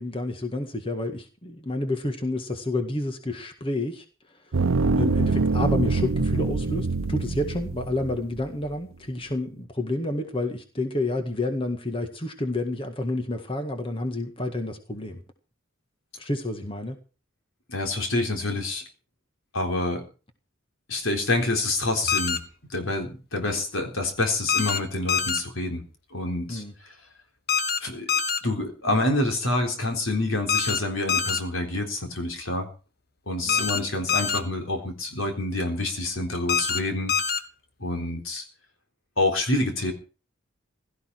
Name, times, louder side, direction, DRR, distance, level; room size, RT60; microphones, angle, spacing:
voice 1, 0.0-4.0 5.0-15.2 16.2-17.0 26.5-26.7 33.5-33.7, left 2 dB, 25° left, 6 dB, 1.8 m, -29 dB
sound 1, 4.5-8.4, right 3 dB, 85° right, 0.7 m, -24 dB
voice 2, 17.7-18.8 19.5-20.0 20.9-22.4 22.7-25.8 26.1-26.6 27.8-28.1 28.4-32.7 33.3-37.1 37.8-38.5 39.2-39.9, left 2 dB, 85° left, 4 dB, 3.8 m, -27 dB
sound 2, 22.1-22.4 24.5-24.8 25.1-25.4 27.5-27.8 28.1-28.4 30.5-30.8 31.1-31.4 33.5-33.8 34.1-34.4 36.5-36.8 37.1-37.4, left 6 dB, 50° left, 1.2 m, -24 dB
16.5 x 13.5 x 4.7 m, 0.36 s
head